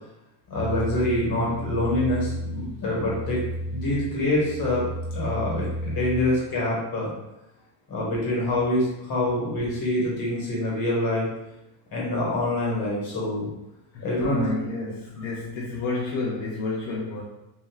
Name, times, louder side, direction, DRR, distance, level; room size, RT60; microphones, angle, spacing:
voice 1, 0.5-3.4 3.7-4.9 5.1-7.1 7.9-11.3 11.9-13.5 14.0-14.4, left 1 dB, 55° left, -5 dB, 1.5 m, -25 dB
sound 1, 0.5-6.3, equal, 30° left, 1.4 m, -32 dB
voice 2, 13.9-17.2, left 3 dB, 85° left, -4 dB, 0.7 m, -30 dB
2.9 x 2.7 x 2.3 m, 0.93 s
cardioid pair, 120°, 43 cm